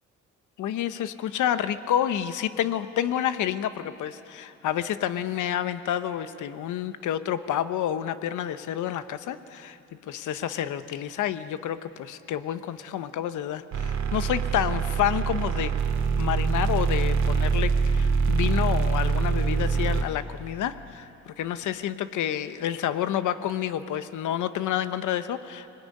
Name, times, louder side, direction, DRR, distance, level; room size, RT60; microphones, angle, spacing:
voice 1, 0.6-9.8 10.1-15.7 16.2-25.7, left 10 dB, 80° left, 12 dB, 1.0 m, -29 dB
sound 1, 13.7-20.0, right 5 dB, 70° right, 2.2 m, -24 dB
25.0 x 20.5 x 9.6 m, 2.7 s
cardioid pair, 90°, 30 cm